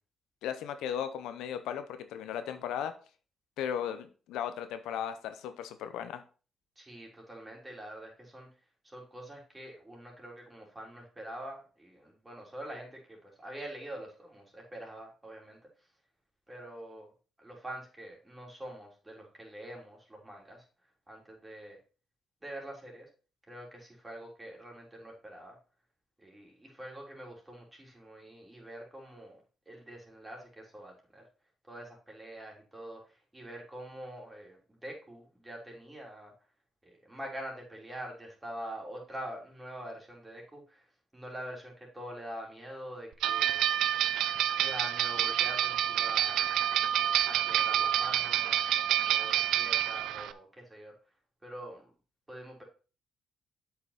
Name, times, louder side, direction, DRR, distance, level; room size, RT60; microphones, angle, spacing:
voice 1, 0.4-2.9 3.6-6.2, left 9 dB, 90° left, 9 dB, 0.8 m, -36 dB
voice 2, 6.8-8.5 8.8-15.9 16.5-17.1 17.4-20.6 21.1-21.8 22.4-23.1 23.5-25.6 26.2-29.4 29.7-31.2 31.7-36.3 36.8-43.8 44.6-46.6 47.3-48.6 49.0-50.9 51.4-51.9 52.3-52.6, right 1 dB, 15° right, -1 dB, 3.8 m, -45 dB
sound 1, 43.2-50.3, right 11 dB, 85° right, 0.5 m, -28 dB
7.8 x 5.9 x 4.2 m, 0.35 s
cardioid pair, 90°, 0 cm